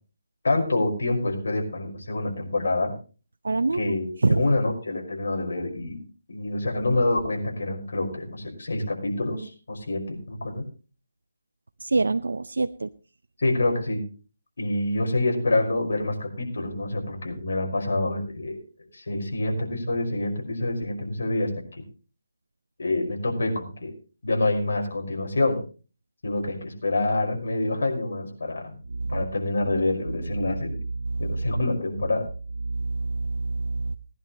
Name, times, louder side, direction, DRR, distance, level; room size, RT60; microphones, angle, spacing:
voice 1, 0.4-2.9 3.7-6.0 6.3-10.6 13.4-14.0 14.6-18.6 18.9-21.8 22.8-23.9 24.2-25.6 26.2-28.8 29.1-30.8 31.2-32.3, left 2 dB, 75° left, 2 dB, 5.4 m, -26 dB
voice 2, 3.4-3.9 4.2-4.4 11.8-12.9 28.9-29.2 31.0-31.3 32.7-34.0, right 3 dB, 90° right, 11 dB, 0.6 m, -26 dB
19.5 x 11.0 x 3.2 m, 0.35 s
hypercardioid pair, 165°, 0 cm